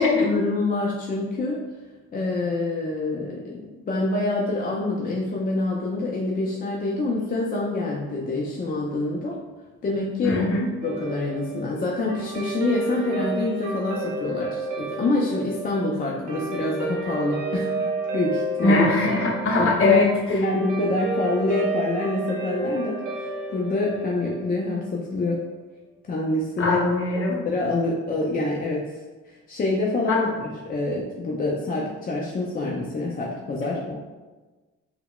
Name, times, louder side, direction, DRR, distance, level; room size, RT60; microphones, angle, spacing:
voice 1, 0.2-1.6 2.1-3.6 3.9-9.4 9.8-18.9 19.5-20.0 20.3-23.0 23.5-25.4 26.1-26.8 27.3-28.8 29.3-34.0, left 2 dB, 30° left, -3 dB, 0.4 m, -26 dB
voice 2, 10.2-10.7 18.6-20.1 26.6-27.4 30.1-30.2, left 3 dB, 45° left, -2 dB, 0.8 m, -20 dB
Guitar, 10.8-25.4, right 2 dB, 90° right, 0.8 m, -31 dB
3.8 x 2.1 x 2.3 m, 1.2 s
cardioid pair, 90°, 30 cm